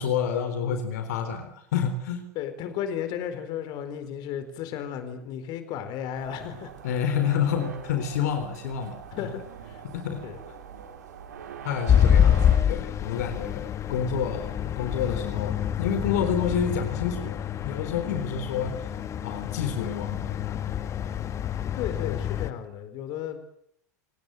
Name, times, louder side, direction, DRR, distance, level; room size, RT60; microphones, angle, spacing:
voice 1, 0.0-2.2 6.8-9.3 9.9-10.2 11.6-18.9 19.2-20.6, left 7 dB, 65° left, 7 dB, 4.1 m, -29 dB
voice 2, 2.3-6.7 9.1-9.8 10.2-10.4 21.8-23.4, left 9 dB, 45° left, 10 dB, 4.3 m, -34 dB
sound 1, 6.1-12.6, right 6 dB, 70° right, 4.3 m, -42 dB
sound 2, 11.9-22.5, left 9 dB, 30° left, 1.8 m, -26 dB
28.5 x 19.0 x 8.0 m, 0.70 s
hypercardioid pair, 90°, 10 cm